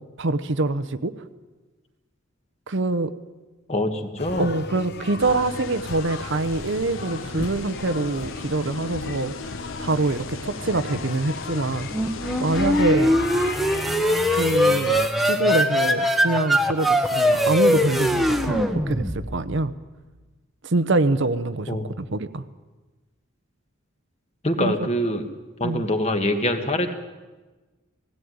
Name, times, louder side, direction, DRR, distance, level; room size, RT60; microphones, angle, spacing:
voice 1, 0.2-1.1 2.7-3.1 4.4-9.5 9.8-11.9 12.4-13.2 14.2-14.9 15.2-19.7 20.6-22.4 24.6-24.7 25.6-25.9, right 2 dB, 60° right, 13 dB, 0.8 m, -25 dB
voice 2, 3.7-4.5 21.7-21.9 24.4-25.3 25.6-26.9, left 1 dB, 30° left, 6 dB, 1.7 m, -24 dB
sound 1, 4.2-15.1, left 4 dB, 50° left, 0.9 m, -35 dB
sound 2, 5.2-12.8, left 4 dB, 70° left, 1.2 m, -39 dB
sound 3, 11.9-19.6, equal, ahead, 1.2 m, -21 dB
18.5 x 16.5 x 9.5 m, 1.2 s
head